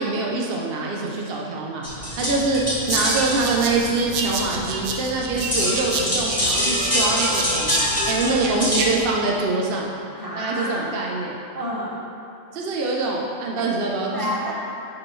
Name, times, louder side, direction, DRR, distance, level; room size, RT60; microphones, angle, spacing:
voice 1, 0.0-1.8 2.2-2.6 2.9-9.9 10.3-11.3 12.5-14.3, right 3 dB, 55° right, -2 dB, 0.8 m, -24 dB
sound 1, 1.8-9.0, left 1 dB, 10° left, 1.6 m, -25 dB
sound 2, 2.9-8.9, right 4 dB, 75° right, 1.1 m, -30 dB
voice 2, 8.2-8.5 10.2-10.9 11.5-12.0 14.1-14.5, equal, 15° right, -7 dB, 1.3 m, -29 dB
10.0 x 5.0 x 3.1 m, 2.9 s
omnidirectional pair, 1.3 m